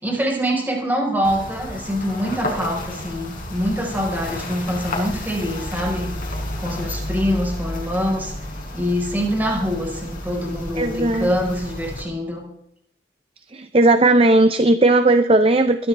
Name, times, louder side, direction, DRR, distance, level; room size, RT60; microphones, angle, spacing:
voice 1, 0.0-6.1 6.6-8.3 8.7-12.5, equal, 10° right, 0 dB, 4.3 m, -24 dB
sound 1, 1.2-12.0, left 1 dB, 45° left, 4.4 m, -31 dB
voice 2, 10.7-11.3 13.5-15.9, right 2 dB, 30° right, 10 dB, 0.6 m, -16 dB
21.5 x 14.0 x 3.4 m, 0.75 s
head